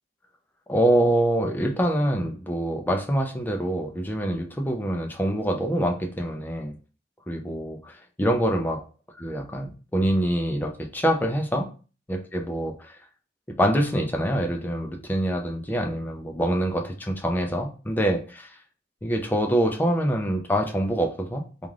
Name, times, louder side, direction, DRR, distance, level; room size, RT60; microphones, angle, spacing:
voice 1, 0.7-6.7 7.3-8.8 9.2-11.7 12.1-13.0 13.5-18.5 19.0-21.7, equal, 10° left, 3 dB, 0.4 m, -25 dB
2.4 x 2.3 x 3.2 m, 0.36 s
head